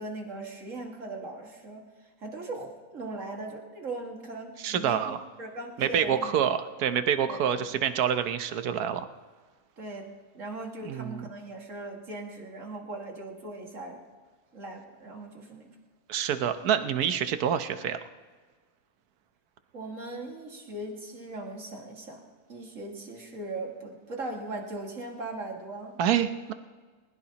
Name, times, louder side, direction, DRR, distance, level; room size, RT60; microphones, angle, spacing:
voice 1, 0.0-1.8 2.2-5.1 5.4-6.5 7.3-7.8 9.8-14.0 14.5-15.7 19.7-22.2 22.5-26.0, right 2 dB, 55° right, 1 dB, 2.4 m, -39 dB
voice 2, 4.6-5.2 5.8-9.1 10.8-11.3 16.1-18.0 26.0-26.5, right 9 dB, 80° right, 10 dB, 1.3 m, -27 dB
20.5 x 20.0 x 2.9 m, 1.4 s
omnidirectional pair, 1.6 m